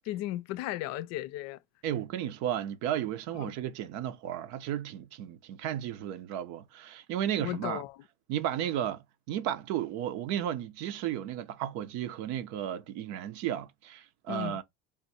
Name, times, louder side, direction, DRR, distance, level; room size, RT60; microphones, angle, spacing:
voice 1, 0.1-1.6 3.4-3.5 7.4-8.0 14.3-14.6, left 15 dB, 60° left, 0.5 m, -35 dB
voice 2, 1.8-7.8 8.3-14.6, right 11 dB, 70° right, 0.7 m, -34 dB
3.6 x 2.6 x 4.1 m
supercardioid pair, 110°, 29 cm